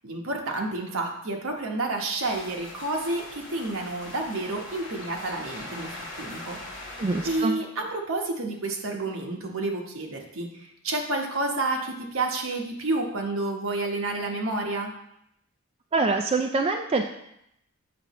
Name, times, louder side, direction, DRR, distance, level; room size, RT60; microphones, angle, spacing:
voice 1, 0.0-6.6 6.8-7.0 7.2-14.9, right 2 dB, 75° right, 1 dB, 1.1 m, -30 dB
sound 1, 2.2-7.4, left 1 dB, 60° left, 1.6 m, -41 dB
voice 2, 7.0-7.6 15.9-17.0, right 3 dB, 25° right, 3 dB, 0.3 m, -25 dB
7.5 x 5.8 x 3.0 m, 0.77 s
head